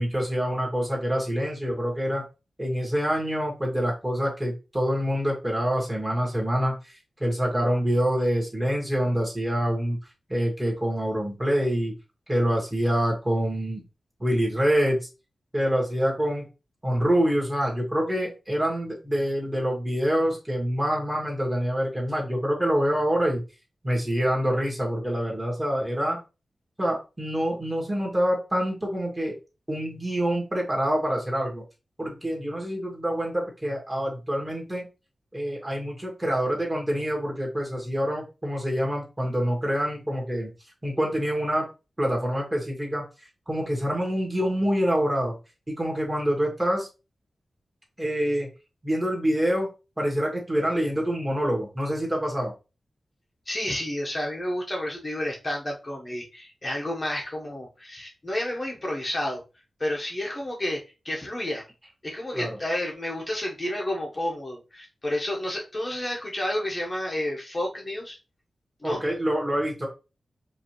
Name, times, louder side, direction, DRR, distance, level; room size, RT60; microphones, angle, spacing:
voice 1, 0.0-2.2 2.6-6.7 7.2-10.0 10.3-11.9 12.3-13.8 14.2-15.0 15.5-16.4 16.8-23.4 23.8-26.2 26.8-29.3 29.7-31.6 32.0-34.8 35.3-40.5 40.8-41.7 42.0-43.0 43.5-45.4 45.7-46.9 48.0-48.5 48.8-49.7 50.0-52.5 62.3-62.6 68.8-69.9, equal, 15° right, -2 dB, 1.8 m, -26 dB
voice 2, 53.5-59.4 59.8-61.6 62.0-68.2 68.8-69.0, left 1 dB, 30° left, -1 dB, 1.0 m, -30 dB
5.0 x 2.8 x 3.0 m, 0.30 s
wide cardioid pair, 105°, 0 cm